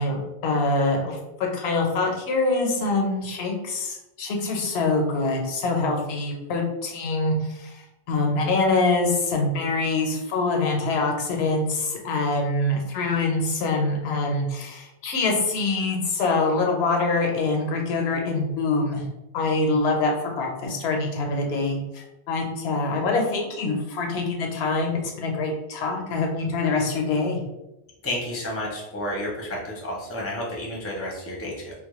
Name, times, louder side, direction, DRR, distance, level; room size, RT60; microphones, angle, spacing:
voice 1, 0.0-19.1 19.3-27.4, left 3 dB, 90° left, 1 dB, 0.8 m, -25 dB
voice 2, 28.0-31.7, left 1 dB, 20° left, -3 dB, 0.4 m, -31 dB
2.2 x 2.0 x 2.9 m, 0.93 s
omnidirectional pair, 1.0 m